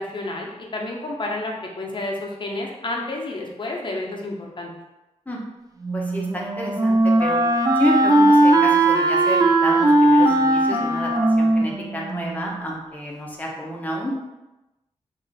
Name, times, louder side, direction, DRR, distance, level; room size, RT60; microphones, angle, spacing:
voice 1, 0.0-4.7, left 2 dB, 40° left, -1 dB, 0.8 m, -30 dB
Wind instrument woodwind instrument, 5.8-12.7, right 2 dB, 30° right, 0.4 m, -18 dB
voice 2, 5.9-7.4 7.8-14.1, equal, 15° left, -2 dB, 0.9 m, -29 dB
2.7 x 2.4 x 4.0 m, 0.99 s
cardioid pair, 65°, 12 cm